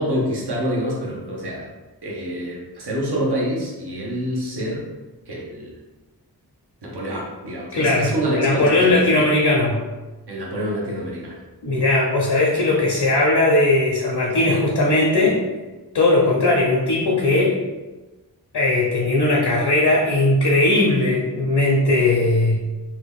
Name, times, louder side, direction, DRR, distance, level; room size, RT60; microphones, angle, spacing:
voice 1, 0.0-1.7 2.0-4.9 5.3-5.7 6.8-9.3 10.3-11.4, equal, 80° right, -3 dB, 0.8 m, -26 dB
voice 2, 7.7-9.8 11.6-15.4 15.9-17.5 18.5-22.6, left 2 dB, 80° left, -3 dB, 0.7 m, -18 dB
2.8 x 2.2 x 3.4 m, 1.2 s
wide cardioid pair, 55°, 39 cm